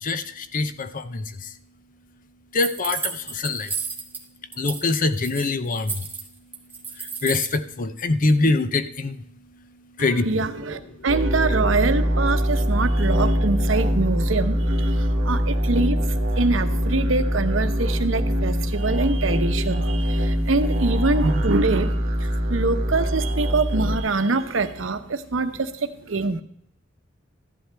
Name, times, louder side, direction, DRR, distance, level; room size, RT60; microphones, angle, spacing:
voice 1, 0.0-1.5 2.5-3.7 4.6-6.1 7.0-10.3 10.9-11.1 15.0-15.3 20.2-20.5 22.4-22.5, left 3 dB, 45° left, 12 dB, 0.7 m, -25 dB
sound 1, 2.6-4.2 4.5-4.9 5.1-7.5, right 5 dB, 10° right, 1.6 m, -32 dB
voice 2, 10.0-26.4, right 3 dB, 80° right, 10 dB, 0.9 m, -25 dB
sound 2, 11.1-24.0, equal, 65° right, 1.8 m, -23 dB
14.0 x 11.0 x 3.4 m, 0.69 s
head